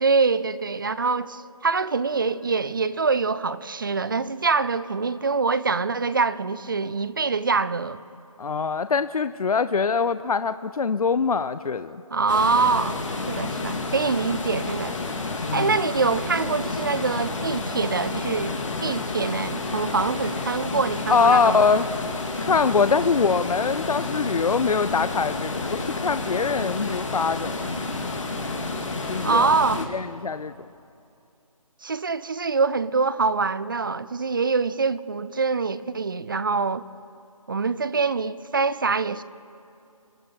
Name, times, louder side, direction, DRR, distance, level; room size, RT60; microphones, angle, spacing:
voice 1, 0.0-8.0 12.1-13.0 13.3-15.0 15.5-21.7 29.2-29.8 31.8-36.8 37.5-39.2, right 4 dB, 35° right, 0.5 m, -24 dB
voice 2, 8.4-12.0 15.4-15.8 21.1-21.8 22.4-27.6 29.1-29.5 29.9-30.5, left 5 dB, 80° left, 0.6 m, -23 dB
sound 1, 12.3-29.9, left 3 dB, 55° left, 2.4 m, -30 dB
27.0 x 11.0 x 4.7 m
figure-of-eight pair, 165°, 19 cm